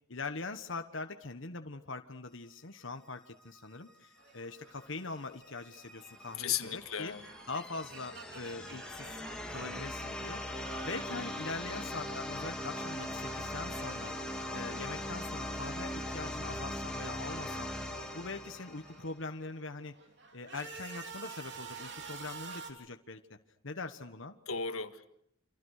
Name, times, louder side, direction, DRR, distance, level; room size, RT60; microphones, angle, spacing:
voice 1, 0.1-7.1 7.5-9.2 9.5-10.4 10.8-14.1 14.5-17.7 18.1-20.0 20.3-23.4 23.6-24.3, left 3 dB, 60° left, 7 dB, 1.3 m, -42 dB
sound 1, 4.2-12.2 12.4-16.2 16.5-19.2 19.7-22.7, right 4 dB, 55° right, 3.4 m, -51 dB
sound 2, 5.4-19.2, left 1 dB, 5° left, 2.6 m, -40 dB
voice 2, 6.4-7.2 24.5-25.1, left 7 dB, 90° left, 8 dB, 1.7 m, -35 dB
28.5 x 27.5 x 6.6 m, 0.72 s
head